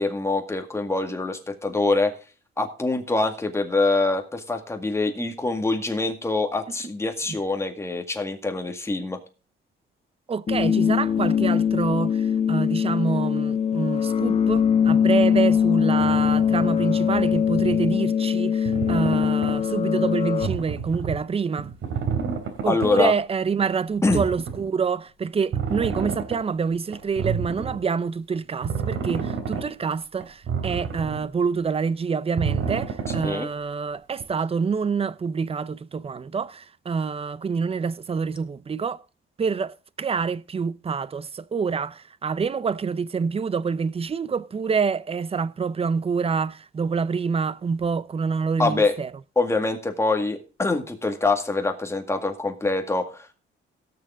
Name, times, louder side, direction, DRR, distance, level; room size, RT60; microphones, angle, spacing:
voice 1, 0.0-2.1 2.6-9.2 22.7-23.1 24.0-24.2 33.2-33.5 48.6-48.9 49.4-53.3, left 3 dB, 15° left, 2.0 m, -24 dB
voice 2, 10.3-21.7 22.6-39.0 39.4-49.1, right 5 dB, 30° right, 0.6 m, -27 dB
sound 1, 10.5-20.5, left 8 dB, 30° left, 0.5 m, -22 dB
sound 2, 16.0-16.4 17.1-17.9 18.6-19.5 20.4-21.2 21.6-23.1 23.6-23.7 24.1-24.7 25.5-26.4 26.9-27.8 28.6-29.6 30.2-31.2 32.4-33.3 34.2-34.3, right 6 dB, 70° right, 3.3 m, -29 dB
17.5 x 6.9 x 3.7 m
cardioid pair, 125°, 21 cm